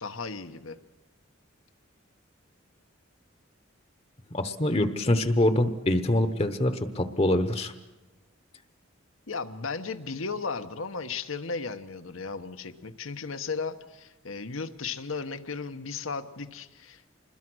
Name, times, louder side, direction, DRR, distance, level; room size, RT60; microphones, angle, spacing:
voice 1, 0.0-0.8 9.3-17.1, left 4 dB, 80° left, 9 dB, 1.2 m, -35 dB
voice 2, 4.3-7.7, left 1 dB, 30° left, 9 dB, 1.0 m, -25 dB
26.0 x 21.0 x 6.3 m, 1.1 s
head